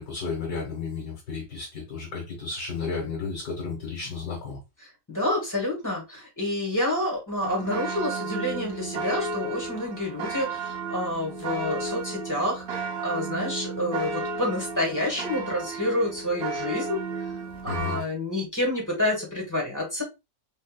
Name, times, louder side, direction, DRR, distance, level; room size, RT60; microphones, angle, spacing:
voice 1, 0.0-4.6 17.7-18.0, left 5 dB, 70° left, 2.0 m, -33 dB
voice 2, 5.1-17.3 17.6-20.0, left 1 dB, 10° left, 1.3 m, -28 dB
sound 1, 7.4-18.0, right 4 dB, 60° right, 0.6 m, -33 dB
4.4 x 2.6 x 2.2 m
omnidirectional pair, 1.8 m